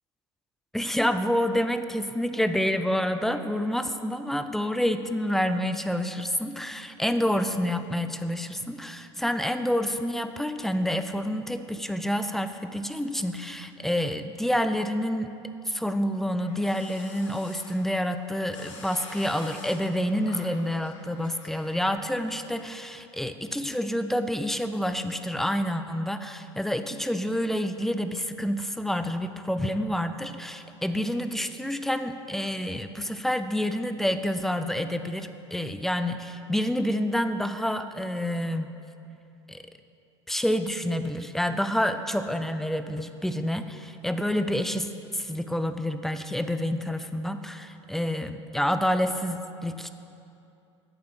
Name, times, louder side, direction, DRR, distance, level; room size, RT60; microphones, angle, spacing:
voice 1, 0.7-15.3 15.7-38.7 39.5-39.6 40.3-49.9, equal, ahead, 9 dB, 0.5 m, -28 dB
sound 1, 16.0-21.9, left 3 dB, 75° left, 1.3 m, -47 dB
8.9 x 7.4 x 5.6 m, 2.7 s
hypercardioid pair, 75°, 15 cm